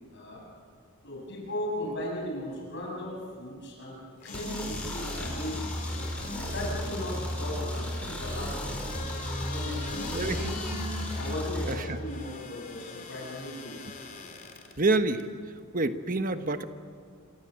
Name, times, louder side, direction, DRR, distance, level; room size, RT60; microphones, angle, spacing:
voice 1, 0.1-0.4 1.0-5.7 6.4-8.7 9.5-10.6 11.1-13.8, left 1 dB, 55° left, -2 dB, 7.1 m, -37 dB
sound 1, 4.2-14.7 15.2-15.3, left 2 dB, 40° left, 3.3 m, -41 dB
sound 2, 4.3-11.7, equal, 5° left, 4.9 m, -34 dB
voice 2, 10.1-10.5 11.7-12.0 14.8-15.3 15.7-16.6, right 2 dB, 40° right, 8 dB, 1.3 m, -27 dB
28.5 x 26.0 x 7.9 m, 2.2 s
head